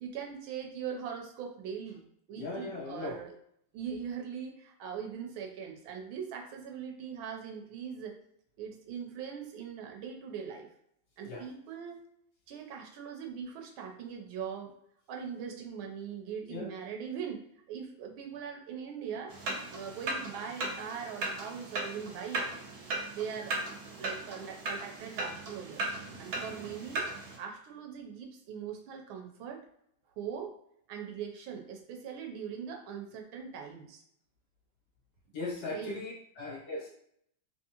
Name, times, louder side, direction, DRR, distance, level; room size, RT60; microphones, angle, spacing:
voice 1, 0.0-2.0 2.3-3.3 3.7-8.2 8.6-10.7 11.2-12.0 12.5-14.8 15.1-19.3 19.7-22.4 23.1-23.7 24.0-27.1 27.4-29.6 30.2-30.6 30.9-34.0 35.7-35.9, right 7 dB, 80° right, 3 dB, 1.4 m, -41 dB
voice 2, 2.4-3.2 11.2-11.4 16.5-16.7 35.3-36.9, left 2 dB, 65° left, -1 dB, 1.1 m, -38 dB
sound 1, 19.3-27.4, right 2 dB, 65° right, 1.0 m, -37 dB
3.5 x 3.0 x 2.8 m, 0.70 s
omnidirectional pair, 2.3 m